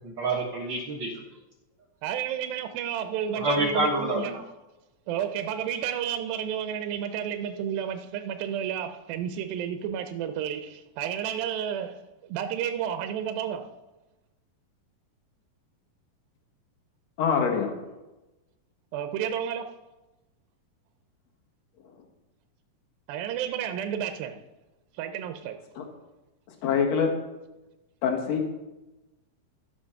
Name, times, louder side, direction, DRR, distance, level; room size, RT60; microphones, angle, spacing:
voice 1, 0.0-1.1 3.3-4.4, right 2 dB, 60° right, 1.2 m, -27 dB
voice 2, 2.0-4.3 5.1-13.7 18.9-19.8 23.1-24.4 24.9-25.6, right 9 dB, 80° right, 2.4 m, -31 dB
voice 3, 17.2-17.7 25.8-25.9 26.6-27.1 28.0-28.6, left 6 dB, 55° left, 2.3 m, -25 dB
14.0 x 5.2 x 5.6 m
omnidirectional pair, 4.1 m